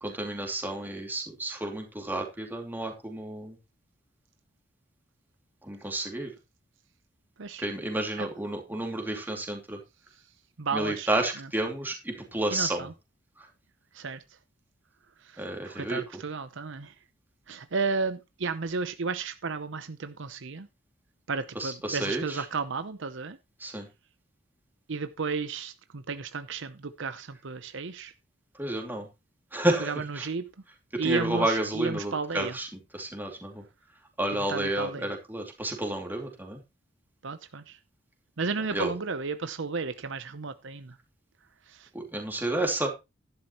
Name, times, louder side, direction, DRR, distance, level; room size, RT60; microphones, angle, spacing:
voice 1, 0.0-3.5 5.7-6.3 7.6-9.8 10.7-12.9 15.4-16.0 21.5-22.4 23.6-23.9 28.6-29.1 29.5-30.3 30.9-32.7 32.9-33.6 34.2-36.6 38.7-38.9 41.9-42.9, right 1 dB, 10° right, 2.7 m, -31 dB
voice 2, 10.6-11.1 11.4-11.5 12.5-12.9 13.9-14.2 15.3-16.9 17.5-20.7 21.3-23.4 24.9-28.1 29.8-30.5 31.0-32.6 34.4-35.1 37.2-37.8 38.4-40.9 41.7-41.9, right 4 dB, 65° right, 0.8 m, -33 dB
11.5 x 11.5 x 3.1 m
head